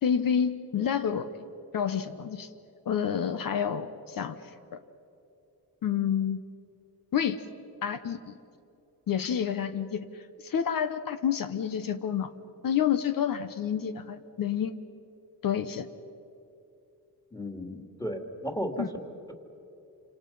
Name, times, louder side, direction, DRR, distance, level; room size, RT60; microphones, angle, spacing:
voice 1, 0.0-1.4 1.7-2.5 2.8-4.4 4.7-4.8 5.8-6.4 7.1-7.4 7.8-8.4 9.1-12.3 12.6-14.7 15.4-15.9 18.8-18.9, left 8 dB, 60° left, 10 dB, 1.1 m, -29 dB
voice 2, 17.3-18.9, equal, 10° left, 4 dB, 2.6 m, -34 dB
28.0 x 26.5 x 5.6 m, 2.8 s
cardioid pair, 120°, 39 cm